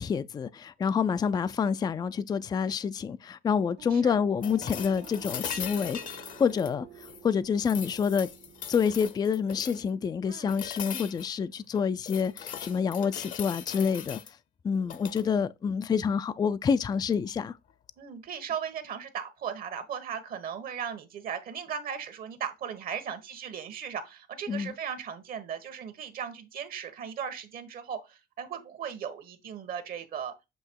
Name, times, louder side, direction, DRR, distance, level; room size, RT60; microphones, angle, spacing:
voice 1, 0.0-6.0 6.4-6.9 7.2-8.3 8.7-14.2 14.6-17.6 24.5-24.7, left 6 dB, 25° left, 0.3 m, -27 dB
sound 1, 3.8-9.1, right 8 dB, 85° right, 1.8 m, -50 dB
Pots and Pans Crashing, 4.4-7.3 7.6-9.9 10.5-11.3 11.7-14.3 14.8-15.3 17.3-17.4, left 8 dB, 50° left, 0.8 m, -40 dB
voice 2, 18.0-30.3, right 8 dB, 60° right, 1.3 m, -37 dB
7.8 x 2.8 x 4.5 m
cardioid pair, 110°, 17 cm